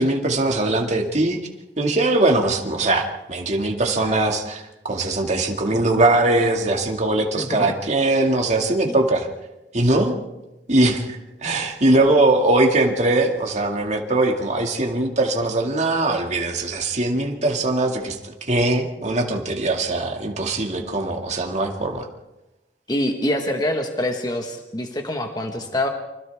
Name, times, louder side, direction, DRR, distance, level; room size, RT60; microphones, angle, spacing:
voice 1, 0.0-1.4 1.8-4.6 4.9-9.3 9.7-10.2 10.7-22.1, right 2 dB, 40° right, 2 dB, 2.3 m, -21 dB
voice 2, 22.9-25.9, left 1 dB, 25° left, 3 dB, 1.5 m, -25 dB
30.0 x 25.0 x 3.6 m, 0.98 s
head